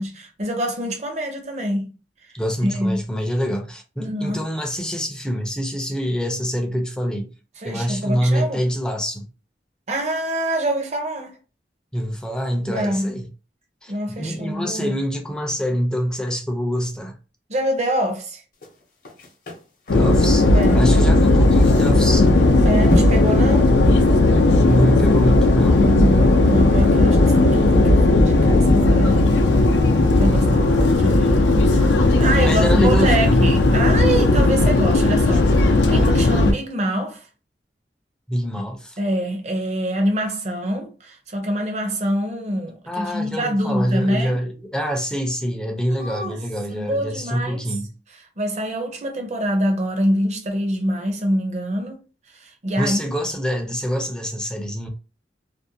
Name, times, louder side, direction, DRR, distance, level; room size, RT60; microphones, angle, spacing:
voice 1, 0.0-1.9 2.6-3.0 4.0-4.4 7.6-8.6 9.9-11.4 12.7-13.1 13.9-15.0 17.5-18.4 20.5-20.8 22.6-23.7 25.7-29.2 30.2-31.4 31.7-37.2 38.6-38.7 39.0-44.4 45.9-46.4 46.7-47.6 48.4-52.0 52.3-53.0, equal, 40° right, 0.6 m, -25 dB
voice 2, 2.3-7.3 7.6-9.3 11.9-13.3 13.8-13.9 14.2-17.2 19.9-20.5 20.7-22.5 24.7-25.9 32.4-33.4 38.3-39.0 42.9-47.9 52.8-54.9, equal, 5° left, 0.4 m, -25 dB
sound 1, 18.5-27.1 27.5-27.6, right 1 dB, 50° left, 0.7 m, -33 dB
sound 2, 19.9-36.5, left 2 dB, 90° left, 0.4 m, -16 dB
2.5 x 2.1 x 2.7 m
head